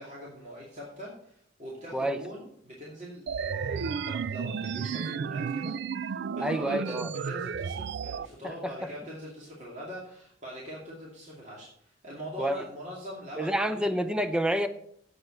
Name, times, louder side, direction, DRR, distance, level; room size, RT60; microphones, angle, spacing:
voice 1, 0.0-13.9, equal, 40° right, -4 dB, 2.5 m, -43 dB
sound 1, 3.3-8.3, right 6 dB, 60° right, 0.4 m, -33 dB
voice 2, 6.4-7.1 8.4-8.7 12.4-12.6 13.4-14.7, right 1 dB, 5° right, 8 dB, 0.7 m, -28 dB
8.0 x 7.9 x 6.6 m, 0.68 s
head